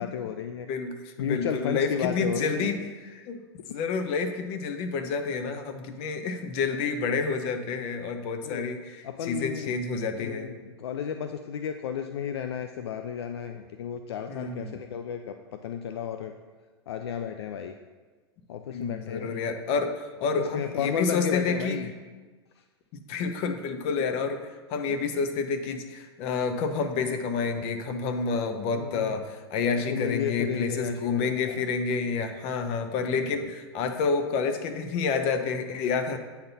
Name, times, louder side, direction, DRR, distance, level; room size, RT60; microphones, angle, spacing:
voice 1, 0.0-0.7 1.2-2.8 8.4-8.7 9.0-9.8 10.1-16.3 16.9-17.7 18.5-19.4 20.4-21.9 28.7-29.1 29.9-31.6, left 8 dB, 75° left, 7 dB, 0.4 m, -33 dB
voice 2, 0.7-3.4 3.7-10.5 14.3-14.8 18.7-21.8 22.9-36.2, left 4 dB, 45° left, 7 dB, 0.8 m, -29 dB
8.5 x 3.9 x 4.0 m, 1.3 s
hypercardioid pair, 105°, 14 cm